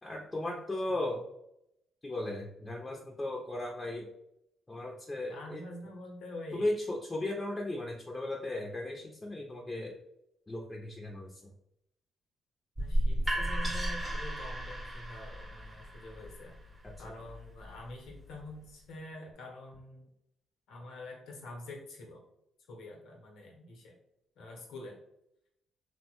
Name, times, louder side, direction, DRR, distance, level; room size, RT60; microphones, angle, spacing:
voice 1, 0.0-1.2 2.0-4.1 4.7-5.6 6.5-9.9 10.5-11.4, left 1 dB, 20° left, -1 dB, 0.5 m, -36 dB
voice 2, 0.9-1.2 5.3-6.8 12.8-16.6 17.0-20.1 20.7-22.2 22.7-24.0 24.4-25.0, left 1 dB, 80° left, 0 dB, 0.8 m, -46 dB
sound 1, 12.8-18.6, right 1 dB, 20° right, 0.7 m, -35 dB
2.8 x 2.1 x 2.9 m, 0.79 s
supercardioid pair, 70°, 0 cm